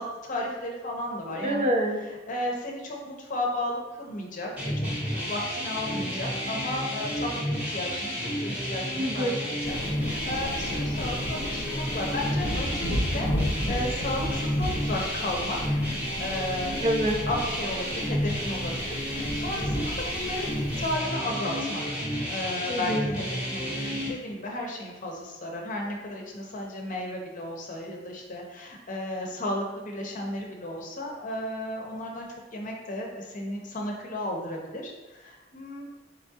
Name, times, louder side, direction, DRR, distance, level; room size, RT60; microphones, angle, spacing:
voice 1, 0.0-1.7 2.3-15.8 16.2-16.8 17.3-35.8, left 1 dB, 40° left, 0 dB, 0.7 m, -34 dB
voice 2, 1.2-2.0 9.0-9.4 16.8-17.2 22.7-23.1, right 1 dB, 35° right, 2 dB, 0.4 m, -26 dB
sound 1, 4.6-24.1, equal, 5° right, 0.9 m, -31 dB
sound 2, 9.6-21.0, equal, 85° left, 0.7 m, -34 dB
4.2 x 3.5 x 2.7 m, 1.2 s
head